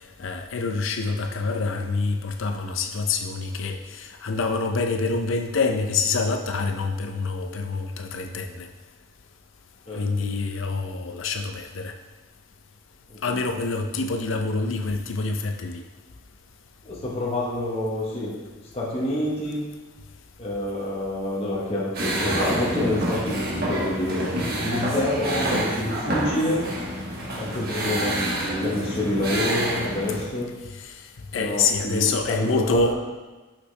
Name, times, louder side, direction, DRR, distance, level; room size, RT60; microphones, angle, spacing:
voice 1, 0.2-8.7 9.9-11.9 13.2-15.8 30.1-30.2 30.7-31.0 31.3-32.9, left 4 dB, 80° left, 5 dB, 0.6 m, -26 dB
voice 2, 9.9-10.3 13.1-13.4 16.8-18.4 18.7-19.6 20.4-24.3 24.6-26.7 27.4-30.5 31.3-32.9, left 1 dB, 30° left, -6 dB, 1.1 m, -28 dB
sound 1, 21.9-30.2, right 1 dB, 50° right, 1.2 m, -27 dB
5.9 x 5.7 x 3.3 m, 1.2 s
head